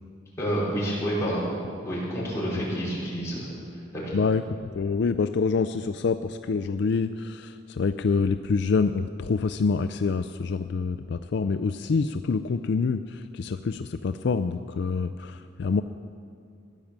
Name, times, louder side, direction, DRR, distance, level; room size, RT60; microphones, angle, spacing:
voice 1, 0.4-1.4 1.8-3.5 3.9-4.2, equal, 15° left, -7 dB, 5.0 m, -28 dB
voice 2, 4.7-15.8, left 4 dB, 60° left, 9 dB, 0.4 m, -26 dB
15.5 x 10.0 x 7.4 m, 2.3 s
head